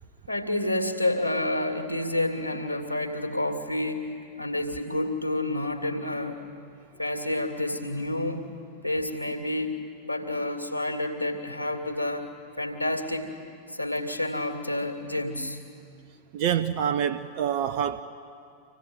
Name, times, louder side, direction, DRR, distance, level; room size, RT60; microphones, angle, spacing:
voice 1, 0.3-4.0 4.4-6.4 7.0-8.5 8.8-12.3 12.6-13.3 13.7-15.6, left 1 dB, 90° right, 5 dB, 2.1 m, -29 dB
voice 2, 16.3-18.0, right 9 dB, 45° right, 9 dB, 0.6 m, -26 dB
26.0 x 16.5 x 9.5 m, 2.5 s
figure-of-eight pair, 90°, 0 cm